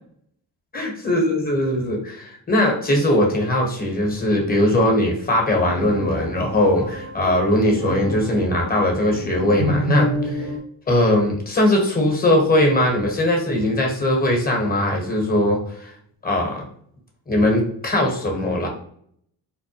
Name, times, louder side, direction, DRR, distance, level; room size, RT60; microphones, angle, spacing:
voice 1, 0.7-10.4 10.9-15.9 16.2-16.6 17.3-18.7, left 1 dB, 20° left, 1 dB, 1.0 m, -20 dB
sound 1, 5.5-10.6, equal, 40° right, 0.6 m, -28 dB
2.2 x 2.1 x 2.8 m, 0.66 s
supercardioid pair, 60°, 47 cm